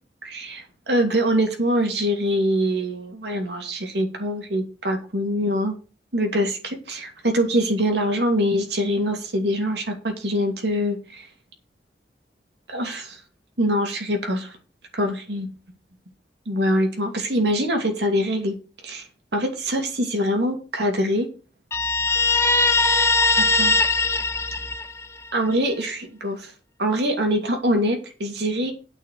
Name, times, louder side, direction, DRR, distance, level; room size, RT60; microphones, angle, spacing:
voice 1, 0.2-5.7 6.1-11.3 12.7-13.2 13.6-14.5 14.9-15.5 16.5-18.6 18.8-19.1 19.3-21.3 23.4-23.7 25.3-26.5 26.8-28.7, equal, 70° right, 3 dB, 2.6 m, -24 dB
Guitar, 21.7-25.3, left 3 dB, 15° left, 0.7 m, -20 dB
9.4 x 6.2 x 6.8 m, 0.34 s
head